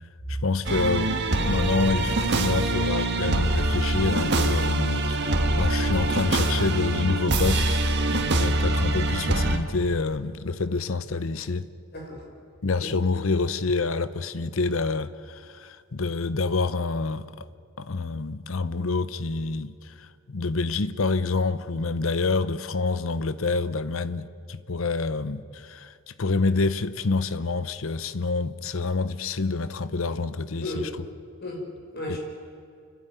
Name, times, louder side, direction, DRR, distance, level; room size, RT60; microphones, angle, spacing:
voice 1, 0.3-1.2 1.5-11.7 12.6-17.5 17.8-30.9 32.1-32.2, left 3 dB, 70° left, 0.8 m, -27 dB
sound 1, 0.7-9.6, right 1 dB, 55° right, 1.6 m, -24 dB
voice 2, 11.9-12.3 12.8-13.0 30.6-31.0 31.4-32.2, left 1 dB, 50° left, 5.3 m, -34 dB
29.5 x 13.0 x 9.2 m
head